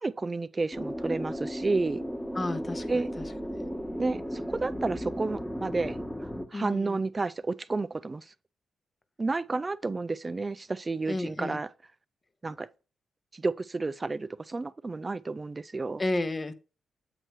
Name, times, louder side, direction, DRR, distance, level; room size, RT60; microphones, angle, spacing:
voice 1, 0.0-2.0 2.9-3.1 4.0-8.3 9.2-11.7 12.4-12.7 13.3-16.0, right 3 dB, 30° right, 0.3 m, -31 dB
sound 1, 0.7-6.5, equal, 5° left, 1.2 m, -35 dB
voice 2, 2.3-3.2 6.5-7.0 11.1-11.6 16.0-16.5, left 2 dB, 30° left, 0.8 m, -32 dB
7.8 x 3.0 x 4.6 m
cardioid pair, 65°, 0 cm